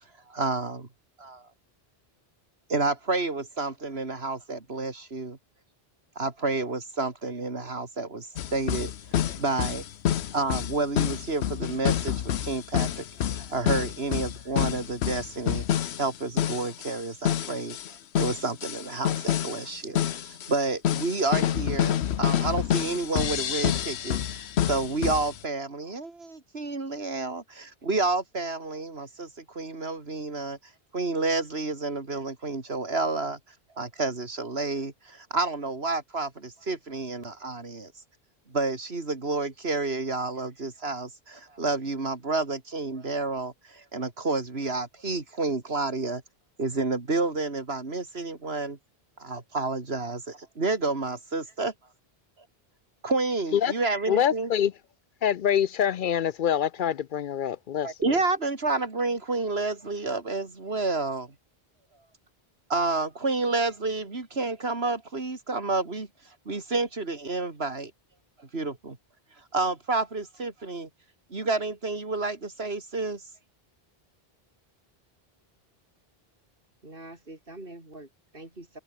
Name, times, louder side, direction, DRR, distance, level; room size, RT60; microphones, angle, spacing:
voice 1, 0.3-0.9 1.2-1.4 2.7-5.4 6.2-8.9 9.3-9.8 10.3-17.8 18.2-30.6 30.9-33.4 33.8-37.9 38.5-46.2 46.6-48.8 49.2-51.7 53.0-54.5 57.8-61.3 62.7-66.1 66.4-67.9 68.5-69.0 69.5-70.9 71.3-73.2, right 3 dB, 75° right, 3.1 m, -30 dB
sound 1, 8.4-17.0 17.2-19.7 19.9-25.4, left 10 dB, 90° left, 1.0 m, -28 dB
voice 2, 54.1-54.7 55.2-57.9, left 9 dB, 60° left, 0.6 m, -25 dB
voice 3, 76.8-78.8, right 2 dB, 60° right, 5.2 m, -45 dB
omnidirectional pair, 1.1 m